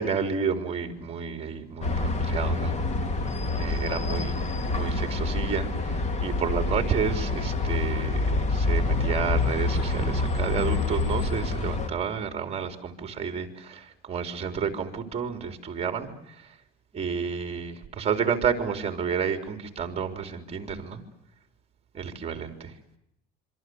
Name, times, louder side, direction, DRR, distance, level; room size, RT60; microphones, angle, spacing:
voice 1, 0.0-2.7 3.6-4.3 4.7-5.7 6.2-13.8 14.1-16.1 16.9-21.0 21.9-22.7, right 6 dB, 30° right, 6 dB, 4.0 m, -30 dB
sound 1, 1.8-11.9, left 2 dB, 30° left, 3.1 m, -27 dB
27.0 x 25.0 x 8.0 m, 0.80 s
cardioid pair, 140°, 21 cm